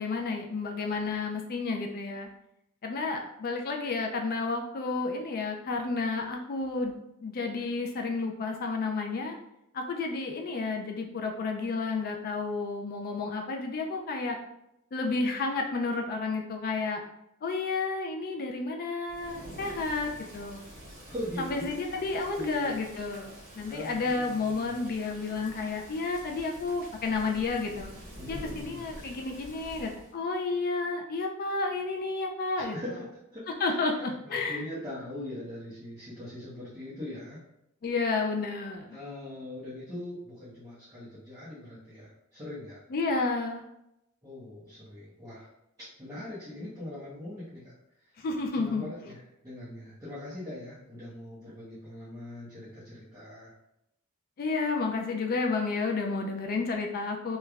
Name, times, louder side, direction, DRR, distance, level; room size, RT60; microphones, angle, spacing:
voice 1, 0.0-2.3 2.8-9.4 9.7-14.4 14.9-17.0 17.4-20.6 21.4-27.9 28.3-32.8 33.5-34.6 37.8-38.9 42.9-43.7 48.2-48.9 54.4-57.4, left 3 dB, 45° left, 2 dB, 0.4 m, -31 dB
Thunder / Rain, 19.0-30.1, equal, 45° right, 1.4 m, -47 dB
voice 2, 21.1-21.7 22.3-22.8 23.7-24.7 28.2-28.8 32.7-33.9 34.2-37.4 38.9-42.8 44.2-45.5 46.0-47.7 48.5-49.2 49.4-53.5, left 1 dB, 15° right, -12 dB, 0.9 m, -41 dB
3.2 x 3.0 x 2.4 m, 0.83 s
head